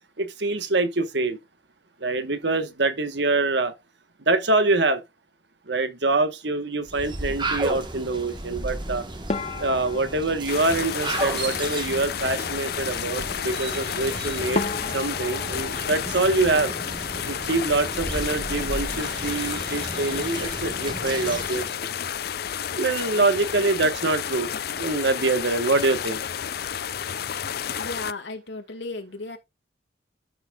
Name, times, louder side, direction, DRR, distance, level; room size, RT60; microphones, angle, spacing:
voice 1, 0.2-1.4 2.0-3.7 4.2-5.0 5.7-9.1 9.6-14.6 14.9-16.7 17.3-21.9 22.8-26.2, right 3 dB, 70° right, 1.3 m, -25 dB
sound 1, 6.8-21.7, right 2 dB, 25° right, 1.4 m, -34 dB
sound 2, 9.3-11.7 14.0-14.1 14.5-17.3 17.6-18.3 18.6-18.8 19.2-19.3 19.9-20.2, left 3 dB, 35° left, 0.9 m, -35 dB
sound 3, 10.5-28.1, left 8 dB, 55° left, 0.4 m, -31 dB
voice 2, 27.8-29.4, left 3 dB, 75° left, 2.1 m, -35 dB
13.0 x 5.8 x 2.4 m
head